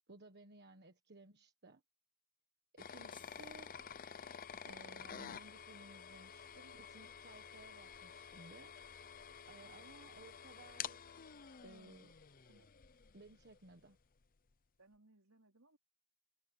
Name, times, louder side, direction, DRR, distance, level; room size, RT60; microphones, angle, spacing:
voice 1, 0.1-1.8 2.7-3.7 4.6-8.7 9.5-11.3 11.6-12.1 13.1-14.0, right 2 dB, 50° right, 1.4 m, -59 dB
sound 1, 2.8-13.6, left 7 dB, 40° left, 0.7 m, -50 dB
sound 2, 3.1-4.6, left 6 dB, 20° left, 1.8 m, -64 dB
voice 2, 9.6-10.2 12.5-12.7 14.8-15.8, right 2 dB, 75° right, 4.1 m, -67 dB
head